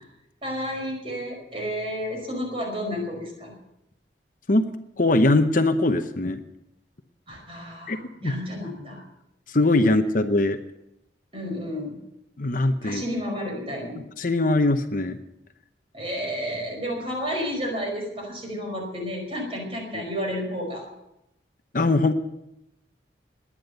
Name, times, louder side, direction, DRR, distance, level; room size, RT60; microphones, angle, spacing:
voice 1, 0.4-3.5 7.3-9.0 11.3-12.0 12.8-14.0 15.9-20.9, equal, 30° right, 2 dB, 5.0 m, -31 dB
voice 2, 5.0-6.4 7.9-8.3 9.5-10.6 12.4-13.0 14.2-15.2 19.9-20.0 21.7-22.1, left 2 dB, 50° left, 8 dB, 0.9 m, -21 dB
20.0 x 10.0 x 6.7 m, 0.86 s
head